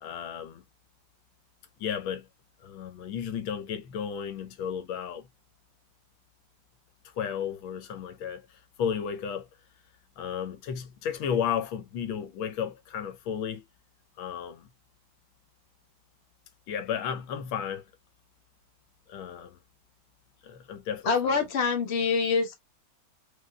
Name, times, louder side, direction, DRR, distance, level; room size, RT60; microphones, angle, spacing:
voice 1, 0.0-0.6 1.8-2.3 2.6-5.3 7.2-8.5 8.8-9.5 10.2-13.6 14.2-14.7 16.7-17.8 19.1-19.6 20.4-21.4, left 8 dB, 90° left, 1.6 m, -33 dB
voice 2, 21.0-22.5, left 5 dB, 35° left, 1.4 m, -25 dB
4.9 x 3.9 x 2.2 m
omnidirectional pair, 2.1 m